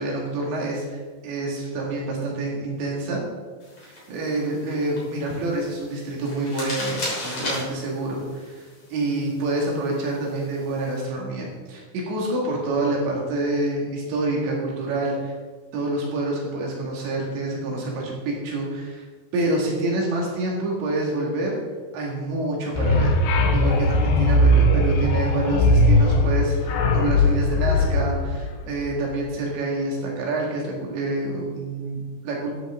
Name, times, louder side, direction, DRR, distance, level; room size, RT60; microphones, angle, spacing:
voice 1, 0.0-3.2 4.1-15.3 15.7-19.1 19.3-21.6 21.9-23.2 23.5-32.5, right 2 dB, 75° right, -2 dB, 4.4 m, -27 dB
sound 1, 3.6-11.0, left 1 dB, 30° left, 3.6 m, -37 dB
sound 2, 22.7-29.0, left 1 dB, 75° left, 2.9 m, -19 dB
13.5 x 10.0 x 3.7 m, 1.4 s
omnidirectional pair, 5.4 m